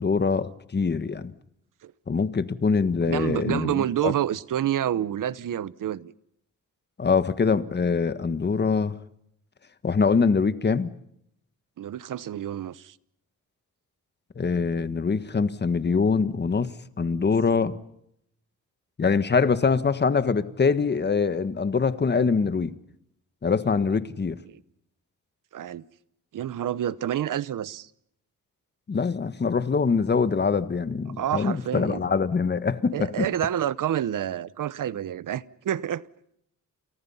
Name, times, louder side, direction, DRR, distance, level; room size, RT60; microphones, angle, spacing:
voice 1, 0.0-1.3 2.1-4.1 7.0-8.9 9.8-10.9 14.3-16.7 17.0-17.8 19.0-22.7 23.4-24.4 28.9-33.3, left 5 dB, 30° left, 1.5 m, -24 dB
voice 2, 3.0-6.1 11.8-12.9 17.1-17.3 24.5-24.6 25.5-25.8 26.3-27.9 31.2-32.0 32.9-36.1, right 11 dB, 75° right, 1.0 m, -28 dB
29.5 x 29.0 x 5.7 m
cardioid pair, 120°, 32 cm